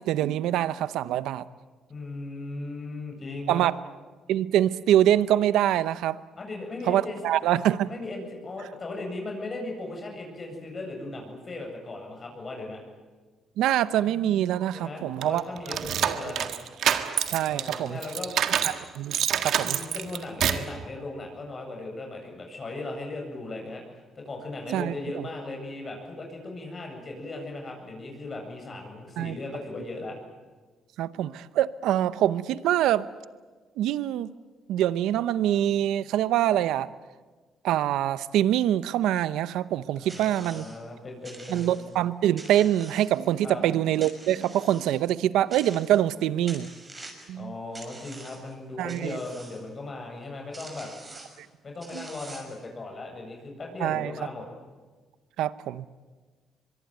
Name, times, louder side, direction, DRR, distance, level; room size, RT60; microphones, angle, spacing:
voice 1, 0.0-1.4 3.5-3.7 4.3-6.2 6.9-7.9 13.6-15.8 16.1-16.2 17.3-18.0 18.6-19.8 24.7-25.3 29.2-29.4 31.0-33.1 33.8-34.3 34.7-36.9 37.6-40.7 41.5-46.7 47.3-47.5 48.8-49.2 51.9-52.1 53.8-54.1 55.4-55.9, right 12 dB, 90° right, 16 dB, 0.8 m, -25 dB
voice 2, 1.9-3.7 6.4-7.2 7.8-12.8 14.7-16.5 17.5-18.3 19.6-23.8 24.2-30.2 39.9-41.8 43.4-43.6 47.3-50.9 51.6-54.5, left 2 dB, 35° left, 2 dB, 7.8 m, -37 dB
sound 1, 15.2-18.8 19.1-20.7, right 9 dB, 70° right, 1.7 m, -27 dB
sound 2, 40.1-40.8 41.2-42.0 42.4-43.4 44.0-45.0 45.5-46.2 46.5-47.3 47.7-48.5 48.9-49.6 50.2-50.3 50.5-51.4 51.8-52.7, right 2 dB, 25° right, 6.4 m, -46 dB
24.0 x 23.0 x 9.2 m, 1.4 s
cardioid pair, 90°, 0 cm